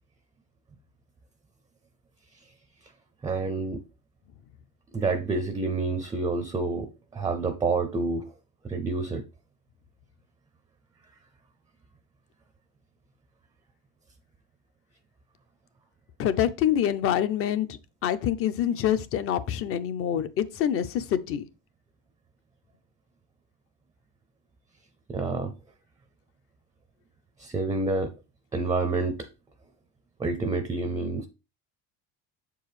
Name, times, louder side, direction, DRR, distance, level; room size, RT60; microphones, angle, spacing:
voice 1, 3.2-3.8 4.9-8.3 8.6-9.2 25.1-25.5 27.4-28.1 28.5-29.3 30.2-31.3, right 3 dB, 10° right, 0.4 m, -28 dB
voice 2, 16.2-17.7 18.0-21.4, left 10 dB, 45° left, 0.6 m, -26 dB
7.0 x 4.6 x 3.2 m
cardioid pair, 145°, 32 cm